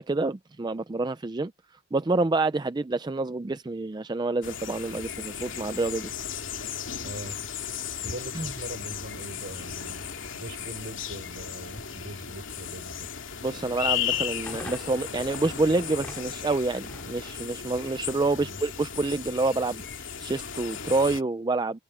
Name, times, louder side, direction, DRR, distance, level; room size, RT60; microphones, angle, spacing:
voice 1, 0.0-1.5 1.9-6.1 8.3-8.5 13.4-21.8, right 3 dB, 20° right, 0.4 m, -28 dB
sound 1, 4.4-21.2, left 8 dB, 85° left, 2.5 m, -35 dB
voice 2, 7.0-7.4 8.0-10.1 10.3-13.1 18.4-18.6, right 1 dB, 60° right, 6.1 m, -41 dB
sound 2, 13.9-18.7 19.0-20.9, left 1 dB, 10° left, 3.5 m, -47 dB
head